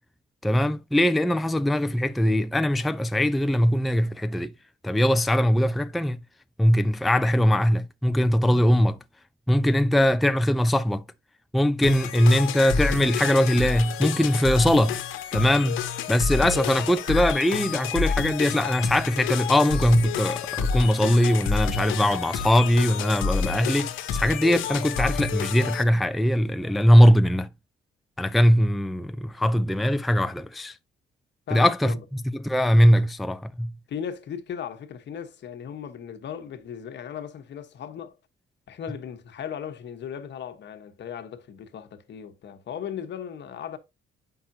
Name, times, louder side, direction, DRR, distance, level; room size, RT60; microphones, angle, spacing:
voice 1, 0.4-4.5 4.8-6.2 6.6-9.0 9.5-11.0 11.5-15.0 15.3-15.8 16.1-27.5 28.2-30.8 31.5-33.7, equal, ahead, 0.4 m, -21 dB
sound 1, 11.8-25.8, left 6 dB, 85° left, 1.0 m, -29 dB
voice 2, 31.5-32.0 33.9-38.2 38.7-43.8, left 8 dB, 65° left, 1.2 m, -37 dB
8.1 x 5.7 x 2.7 m
cardioid pair, 90°, 20 cm